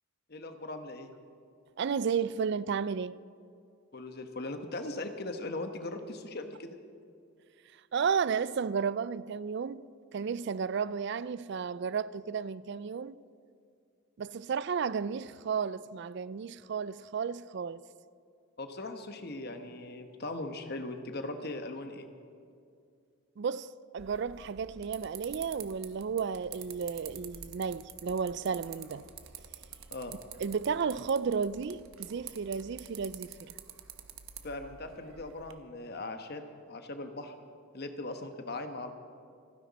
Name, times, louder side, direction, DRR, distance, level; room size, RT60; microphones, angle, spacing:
voice 1, 0.3-1.1 3.9-6.8 18.6-22.1 29.9-30.1 34.4-36.4 36.7-37.3 37.7-38.9, left 2 dB, 50° left, 1.1 m, -39 dB
voice 2, 1.8-3.2 7.9-9.9 10.1-13.2 14.2-17.9 23.4-29.1 30.4-33.5, right 6 dB, 55° right, 0.4 m, -33 dB
sound 1, 24.0-35.5, right 9 dB, 80° right, 1.0 m, -48 dB
27.5 x 10.0 x 4.2 m
head